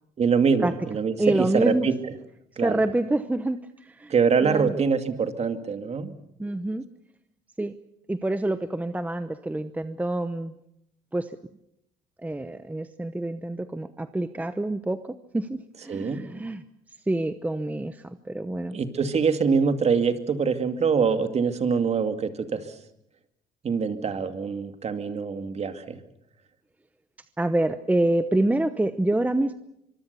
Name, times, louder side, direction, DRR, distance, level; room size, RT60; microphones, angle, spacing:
voice 1, 0.2-2.1 2.6-2.8 4.1-6.1 15.9-16.2 18.7-22.6 23.6-26.0, right 5 dB, 40° right, 8 dB, 2.4 m, -24 dB
voice 2, 1.2-1.9 2.6-4.1 4.4-4.7 6.4-6.8 7.6-7.7 8.1-10.5 11.1-11.4 12.2-16.6 17.1-18.8 27.4-29.5, right 1 dB, 10° right, 11 dB, 0.9 m, -27 dB
24.5 x 23.5 x 6.9 m, 0.81 s
cardioid pair, 110°, 17 cm